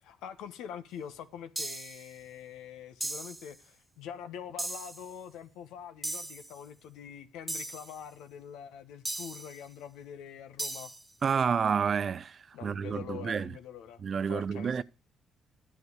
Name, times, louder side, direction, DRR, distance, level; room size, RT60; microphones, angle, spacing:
voice 1, 0.0-10.9 12.5-14.8, left 8 dB, 85° left, 1.2 m, -45 dB
sound 1, 1.6-2.1 3.0-3.5 4.6-5.1 6.0-6.5 7.5-8.0 9.1-9.6 10.6-11.1, right 2 dB, 10° right, 1.6 m, -37 dB
voice 2, 11.2-13.6 14.0-14.8, right 6 dB, 45° right, 0.5 m, -30 dB
10.5 x 7.8 x 6.3 m
cardioid pair, 90°, 0 cm